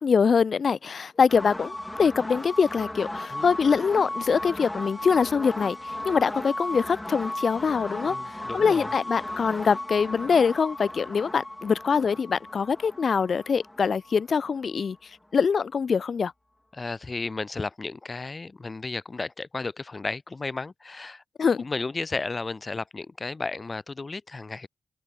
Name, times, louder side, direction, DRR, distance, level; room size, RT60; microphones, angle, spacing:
voice 1, 0.0-8.2 8.5-16.3 21.4-21.6, left 6 dB, 55° left, 0.5 m, -24 dB
sound 1, 1.3-14.9, left 1 dB, 10° left, 4.4 m, -36 dB
voice 2, 8.1-8.9 16.7-21.2 21.6-24.7, left 3 dB, 35° left, 3.0 m, -33 dB
cardioid pair, 75°, 0 cm